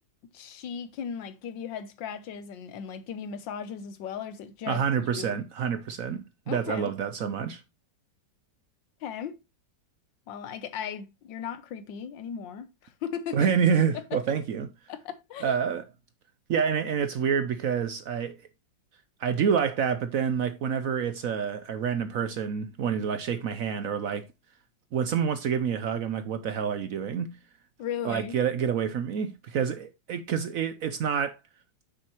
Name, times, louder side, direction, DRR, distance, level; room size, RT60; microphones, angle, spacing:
voice 1, 0.3-5.4 6.5-6.9 9.0-9.4 10.3-13.5 14.9-15.5 27.8-28.3, left 8 dB, 90° left, 1.5 m, -37 dB
voice 2, 4.7-7.6 13.3-14.7 15.4-15.9 16.5-18.5 19.2-24.3 24.9-27.4 28.0-31.4, right 7 dB, 65° right, 0.9 m, -28 dB
7.7 x 6.3 x 3.0 m
omnidirectional pair, 2.0 m